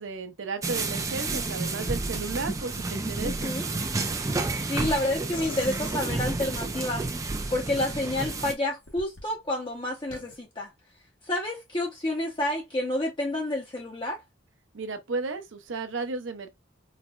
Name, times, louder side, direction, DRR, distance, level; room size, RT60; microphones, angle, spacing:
voice 1, 0.0-3.5 14.7-16.5, right 3 dB, 85° right, 0.6 m, -34 dB
sound 1, 0.6-8.5, right 3 dB, 15° right, 0.3 m, -30 dB
voice 2, 3.2-3.7 4.6-7.0 7.5-10.7 11.2-14.2, left 1 dB, 25° left, 0.6 m, -29 dB
sound 2, 5.3-6.7 7.8-8.3 8.9-9.2 10.1-10.4, left 2 dB, 75° left, 1.0 m, -41 dB
4.1 x 2.2 x 2.2 m
head